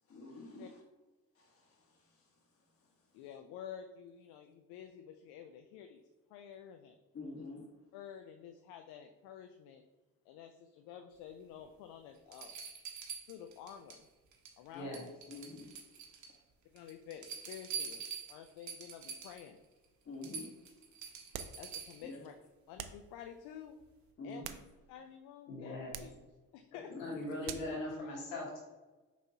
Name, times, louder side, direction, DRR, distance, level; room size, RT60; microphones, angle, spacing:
voice 1, 0.1-0.7 1.3-2.3 2.8-2.9 7.1-7.7 15.3-15.7 20.0-20.5 22.0-22.2 24.2-24.6 26.9-27.6, left 2 dB, 35° left, 0 dB, 1.3 m, -48 dB
voice 2, 3.1-6.0 6.3-7.0 7.4-7.5 7.9-9.8 10.2-12.5 13.3-14.1 14.6-15.1 16.7-19.6 21.6-22.3 22.7-23.8 24.2-24.5 24.9-26.9, left 9 dB, 70° left, 6 dB, 0.5 m, -50 dB
sound 1, 11.6-11.7 12.3-14.0 14.3-14.7 14.9-16.4 16.8-19.5 19.8-19.9 20.2-22.1 23.8-23.9, right 6 dB, 45° right, 1.1 m, -45 dB
voice 3, 14.7-15.0 25.5-26.0 27.0-28.6, left 1 dB, 90° left, -3 dB, 1.5 m, -40 dB
sound 2, 21.3-21.7 22.8-23.1 24.2-25.1 25.9-26.2 27.4-27.8, right 10 dB, 70° right, 0.5 m, -46 dB
5.3 x 3.1 x 2.8 m, 1.2 s
hypercardioid pair, 65°, 39 cm